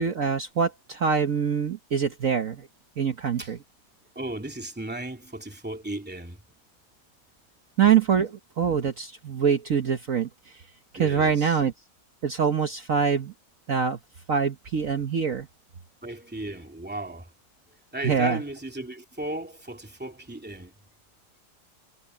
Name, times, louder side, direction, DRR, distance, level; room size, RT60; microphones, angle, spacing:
voice 1, 0.0-2.7 3.0-3.6 7.8-10.3 11.0-11.7 12.2-13.3 13.7-14.0 14.3-15.5 18.0-18.4, right 7 dB, 50° right, 1.1 m, -24 dB
voice 2, 4.1-6.6 11.0-11.6 16.0-17.3 17.7-20.8, right 1 dB, 5° right, 2.4 m, -36 dB
omnidirectional pair, 2.3 m